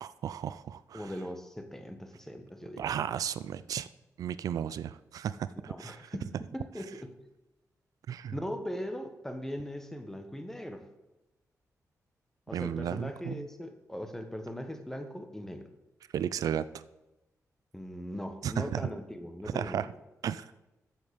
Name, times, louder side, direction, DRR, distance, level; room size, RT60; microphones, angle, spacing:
voice 1, 0.0-1.0 2.8-3.9 4.2-6.0 8.1-8.3 12.5-13.4 16.1-16.7 18.4-18.8 19.5-19.9 20.2-20.5, right 9 dB, 90° right, 16 dB, 0.4 m, -34 dB
voice 2, 0.9-2.9 5.6-7.1 8.3-10.8 12.5-15.7 17.7-19.9, equal, 5° left, 7 dB, 1.3 m, -40 dB
7.9 x 7.4 x 7.0 m, 1.0 s
cardioid pair, 85°, 6 cm